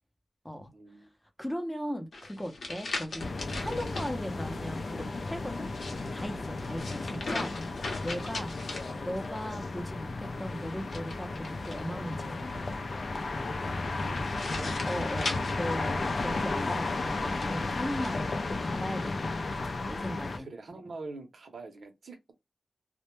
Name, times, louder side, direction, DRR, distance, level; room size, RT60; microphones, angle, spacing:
voice 1, 0.7-1.1 13.8-14.8 20.4-22.3, right 3 dB, 75° right, 0.7 m, -45 dB
voice 2, 1.4-3.3 3.6-5.7 6.1-7.5 8.0-8.5 9.0-12.6 14.8-19.6 19.9-20.5, equal, 10° left, 0.5 m, -38 dB
sound 1, 2.1-4.1 5.6-9.5 10.8-12.1 14.0-16.4 17.1-18.2, left 3 dB, 80° left, 0.7 m, -39 dB
sound 2, 3.2-20.4, left 3 dB, 60° left, 0.4 m, -34 dB
2.1 x 2.1 x 2.9 m
wide cardioid pair, 115°, 0 cm